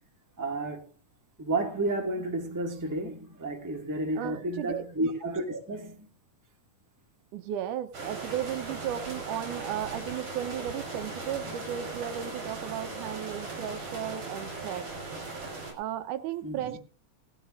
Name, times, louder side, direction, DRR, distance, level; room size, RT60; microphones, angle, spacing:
voice 1, 0.4-0.8 1.4-6.1 16.4-16.8, right 2 dB, 10° right, 1.4 m, -31 dB
voice 2, 4.2-4.9 7.3-14.9 15.8-16.8, right 10 dB, 85° right, 2.3 m, -35 dB
sound 1, 7.9-15.7, right 3 dB, 60° right, 5.9 m, -38 dB
18.0 x 13.0 x 2.5 m
omnidirectional pair, 3.5 m